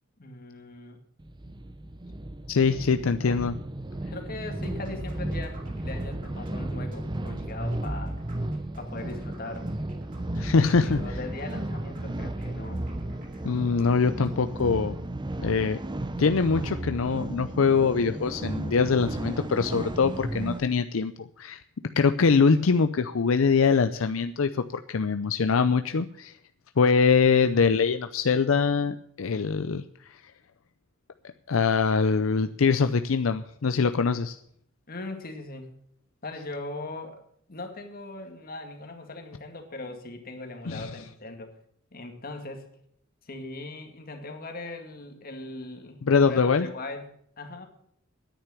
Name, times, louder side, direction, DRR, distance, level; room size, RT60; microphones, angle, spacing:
voice 1, 0.2-1.0 3.1-3.4 4.1-8.1 8.8-9.7 10.8-12.9 34.9-35.7 36.2-37.2 37.5-41.5 41.9-42.7 43.3-46.0 46.3-47.7, left 2 dB, 45° left, 5 dB, 2.0 m, -39 dB
sound 1, 1.2-20.7, right 1 dB, 25° right, 0.7 m, -34 dB
voice 2, 2.5-3.5 10.4-11.2 13.4-15.0 15.4-15.8 16.2-21.6 22.0-26.3 26.8-29.8 31.5-34.4 40.7-40.9 46.0-46.7, left 5 dB, 85° left, 9 dB, 0.6 m, -23 dB
sound 2, 4.6-15.1, right 1 dB, 45° right, 3.5 m, -52 dB
10.0 x 9.0 x 8.5 m, 0.68 s
head